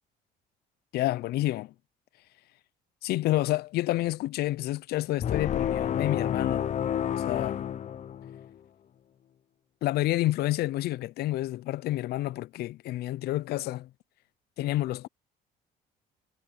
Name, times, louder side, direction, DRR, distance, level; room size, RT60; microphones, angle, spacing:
voice 1, 0.9-1.7 3.0-6.7 7.2-7.6 9.8-13.9 14.6-15.1, left 16 dB, 70° left, 0.5 m, -29 dB
sound 1, 5.2-8.5, left 9 dB, 45° left, 0.8 m, -30 dB
cardioid pair, 110°, 17 cm